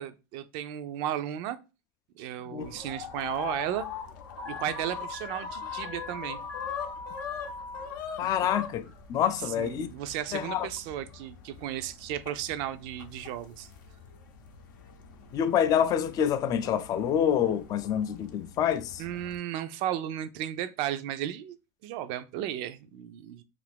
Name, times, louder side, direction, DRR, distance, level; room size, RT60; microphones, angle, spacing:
voice 1, 0.0-1.6 2.2-3.9 4.4-6.4 8.2-8.3 9.4-13.7 19.0-21.6 21.8-23.4, right 11 dB, 60° right, 0.4 m, -34 dB
sound 1, 2.6-19.4, left 7 dB, 85° left, 0.6 m, -42 dB
Alarm, 4.4-7.9, left 2 dB, 90° right, 1.1 m, -41 dB
voice 2, 8.2-9.9 10.3-10.7 15.3-19.0, left 9 dB, 35° left, 0.3 m, -27 dB
2.5 x 2.5 x 3.4 m
supercardioid pair, 110°, 10 cm